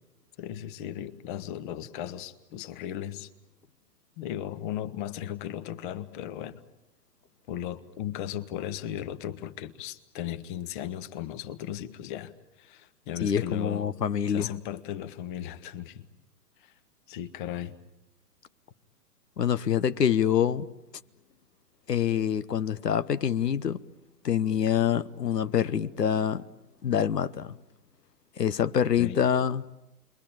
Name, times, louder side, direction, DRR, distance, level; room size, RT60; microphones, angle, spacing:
voice 1, 0.4-3.3 4.2-6.6 7.5-12.3 12.6-13.9 14.3-16.1 16.6-16.7 17.1-17.8 29.0-29.2, left 11 dB, 30° left, 1.4 m, -36 dB
voice 2, 13.2-14.5 19.4-20.7 21.9-23.8 24.2-26.4 26.8-27.6 28.4-29.6, left 8 dB, 85° left, 1.1 m, -26 dB
29.5 x 22.5 x 8.9 m
hypercardioid pair, 140°, 47 cm